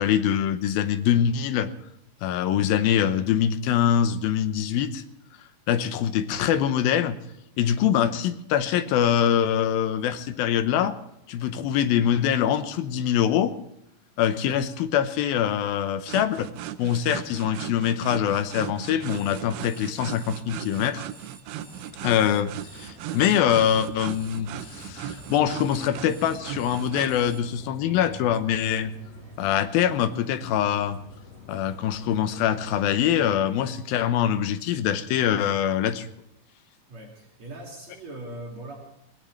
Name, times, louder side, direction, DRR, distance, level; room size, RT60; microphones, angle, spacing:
voice 1, 0.0-1.7 2.2-5.0 5.7-7.2 7.6-11.0 11.3-13.5 14.2-16.5 16.8-21.1 22.0-28.9 29.4-31.0 31.5-36.1, left 9 dB, 75° left, 10 dB, 2.6 m, -24 dB
sound 1, 16.1-27.1, right 12 dB, 80° right, 2.5 m, -38 dB
Alarm, 19.0-27.4, right 3 dB, 30° right, 1.6 m, -50 dB
sound 2, 21.5-33.3, left 2 dB, 20° left, 4.9 m, -47 dB
voice 2, 36.9-38.8, right 1 dB, 45° right, -1 dB, 3.4 m, -40 dB
22.0 x 18.0 x 3.2 m, 0.80 s
omnidirectional pair, 4.5 m